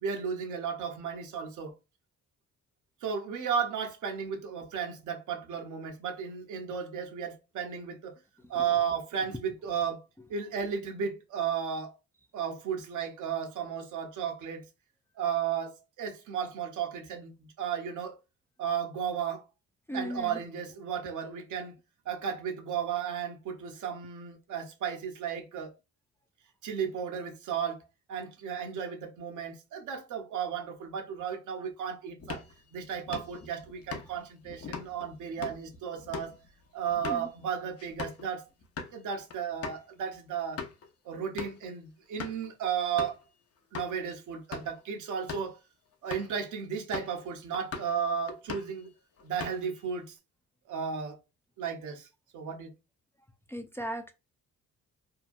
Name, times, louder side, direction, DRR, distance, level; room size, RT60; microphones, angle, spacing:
voice 1, 0.0-1.7 3.0-8.1 8.5-10.0 10.3-12.0 12.3-14.6 15.2-18.2 18.6-19.4 19.9-21.8 22.0-25.7 26.6-27.8 28.1-32.4 32.7-36.4 36.7-38.4 38.9-40.6 41.0-43.2 43.7-45.6 46.0-48.9 49.2-50.2 50.7-51.2 51.6-52.1 52.3-52.7, right 7 dB, 80° right, 0.9 m, -34 dB
voice 2, 19.9-20.3 37.0-37.3 53.5-54.1, right 1 dB, 10° left, 0.4 m, -36 dB
sound 1, 32.2-38.3 38.6-38.9 39.3-39.4 39.6-39.8 40.3-40.9 41.4-41.7 42.2-42.5 43.0-43.2 43.7-43.9 44.4-44.8 45.2-45.5 46.1-46.4 46.9-47.2 47.5-48.0 48.3-48.8 49.2-49.8, left 5 dB, 50° left, 0.8 m, -41 dB
2.8 x 2.2 x 2.5 m
cardioid pair, 90°, 30 cm